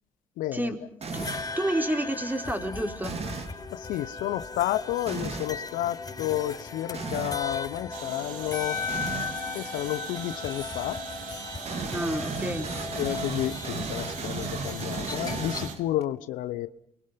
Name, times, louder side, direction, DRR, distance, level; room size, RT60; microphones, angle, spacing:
voice 1, 0.4-0.7 3.7-8.8 9.5-11.0 13.0-16.7, left 13 dB, 80° left, 0.9 m, -31 dB
sound 1, 1.0-1.6 3.0-3.6 5.1-5.5 6.9-7.4 8.9-9.4 11.6-16.0, right 4 dB, 50° right, 3.3 m, -35 dB
sound 2, 1.1-15.7, left 4 dB, 25° left, 5.7 m, -37 dB
voice 2, 1.6-3.1 11.8-12.7, right 1 dB, 15° right, 4.6 m, -29 dB
sound 3, 7.9-15.8, right 9 dB, 75° right, 2.3 m, -41 dB
29.5 x 23.5 x 5.3 m
hypercardioid pair, 50°, 14 cm